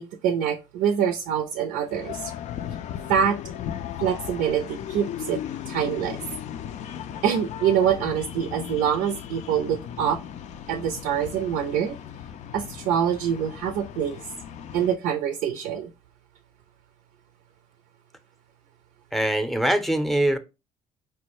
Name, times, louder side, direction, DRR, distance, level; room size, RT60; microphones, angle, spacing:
voice 1, 0.0-2.3 3.1-3.4 4.0-6.2 7.2-10.2 10.7-12.0 12.5-14.3 14.7-15.9, right 8 dB, 85° right, 0.5 m, -25 dB
sound 1, 1.8-15.0, left 10 dB, 60° left, 0.4 m, -37 dB
voice 2, 19.1-20.4, right 1 dB, ahead, 0.6 m, -23 dB
4.4 x 2.1 x 3.0 m
supercardioid pair, 80°, 14 cm